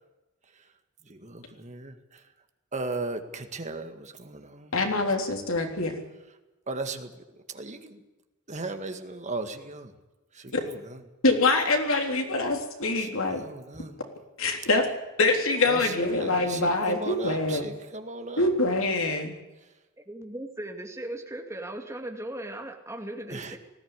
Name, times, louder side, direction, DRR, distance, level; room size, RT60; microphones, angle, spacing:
voice 1, 1.1-2.2 2.7-4.7 6.7-8.0 8.5-9.9 10.3-11.0 13.0-14.0 15.7-18.5 23.3-23.6, right 3 dB, 35° right, 7 dB, 1.9 m, -37 dB
voice 2, 4.7-6.0 10.5-10.6 11.2-13.4 14.4-14.9 15.2-17.7 18.4-19.3, left 2 dB, 65° left, 3 dB, 3.6 m, -25 dB
voice 3, 20.0-23.6, right 1 dB, 15° right, 3 dB, 2.5 m, -38 dB
19.5 x 15.5 x 9.8 m, 1.0 s
head